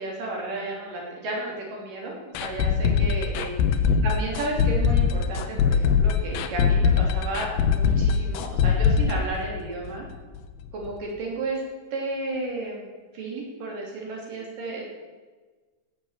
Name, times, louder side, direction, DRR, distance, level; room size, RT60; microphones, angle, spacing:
voice 1, 0.0-2.1 2.4-3.5 4.0-10.1 10.7-11.6 11.9-12.9 13.1-14.8, right 2 dB, 55° right, -2 dB, 4.5 m, -32 dB
sound 1, 2.3-10.1 10.3-10.4 10.8-10.9, left 6 dB, 75° left, 2.5 m, -22 dB
17.0 x 7.4 x 7.4 m, 1.4 s
omnidirectional pair, 4.8 m